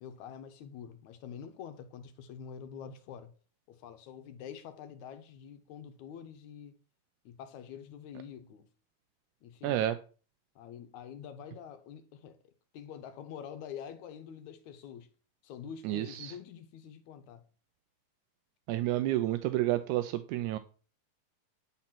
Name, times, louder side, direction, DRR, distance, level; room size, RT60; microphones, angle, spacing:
voice 1, 0.0-3.3 3.7-6.8 7.3-8.7 9.4-9.8 10.6-15.1 15.4-17.4, left 8 dB, 75° left, 2.3 m, -46 dB
voice 2, 9.6-10.0 15.9-16.3 18.7-20.6, right 14 dB, 85° right, 2.0 m, -30 dB
10.5 x 4.2 x 5.8 m
omnidirectional pair, 3.5 m